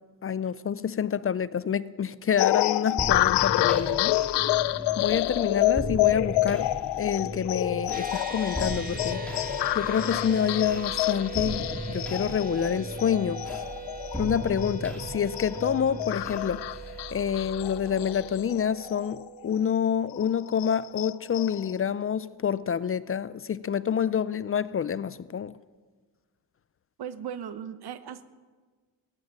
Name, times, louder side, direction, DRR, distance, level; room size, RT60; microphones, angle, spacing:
voice 1, 0.2-4.2 5.0-6.7 7.0-9.2 9.7-13.6 14.2-16.6 17.1-25.6, left 8 dB, 35° left, 0.4 m, -27 dB
sound 1, 2.4-19.3 19.6-19.7 20.1-21.7, left 16 dB, 90° left, 0.5 m, -28 dB
sound 2, 3.0-18.6, equal, 5° left, 2.7 m, -38 dB
sound 3, 7.9-21.5, right 6 dB, 20° right, 1.6 m, -42 dB
voice 2, 27.0-28.2, right 8 dB, 70° right, 1.0 m, -37 dB
16.0 x 9.5 x 7.6 m
cardioid pair, 80°, 40 cm